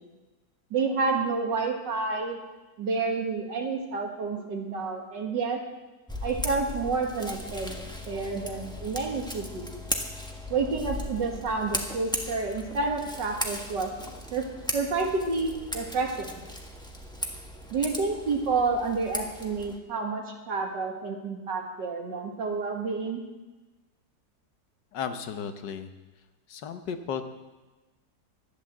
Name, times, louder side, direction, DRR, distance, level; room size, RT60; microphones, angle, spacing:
voice 1, 0.7-2.4 2.8-5.6 6.2-7.8 8.1-9.7 10.5-13.9 14.3-14.4 14.7-16.4 17.7-23.2, right 4 dB, 90° right, 2 dB, 2.4 m, -29 dB
Scissors, 6.1-19.8, equal, 5° left, 1.2 m, -37 dB
voice 2, 24.9-25.9 26.5-27.2, left 7 dB, 80° left, 8 dB, 1.6 m, -34 dB
12.0 x 10.5 x 7.4 m, 1.2 s
omnidirectional pair, 1.9 m